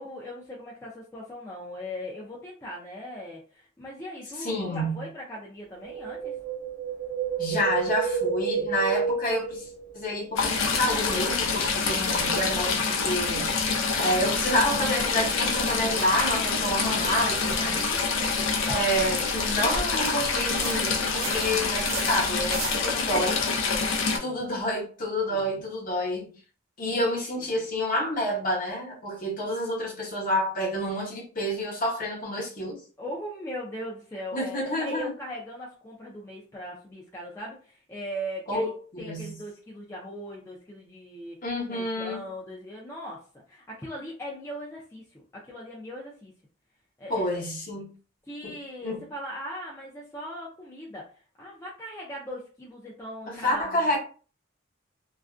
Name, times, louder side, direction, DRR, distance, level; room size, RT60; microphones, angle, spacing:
voice 1, 0.0-6.4 17.7-18.5 24.0-24.4 25.3-25.5 26.8-27.0 27.4-27.6 33.0-38.7 39.0-41.4 41.7-46.3 47.0-47.4 48.3-54.0, equal, 15° left, 0.4 m, -39 dB
voice 2, 4.4-5.0 7.4-9.7 9.9-13.5 13.9-17.9 18.6-23.4 24.2-26.3 26.8-32.8 34.3-35.1 38.5-39.3 41.4-42.2 47.1-47.9 48.4-48.6 48.8-49.0 53.3-54.0, equal, 40° left, 0.9 m, -29 dB
Wind, 5.8-10.2 10.4-10.5, right 6 dB, 75° right, 0.8 m, -30 dB
Stream / Trickle dribble, 10.4-24.2, left 4 dB, 80° left, 0.5 m, -26 dB
sound 1, 14.3-22.8, right 3 dB, 50° right, 0.4 m, -40 dB
2.3 x 2.1 x 2.4 m
head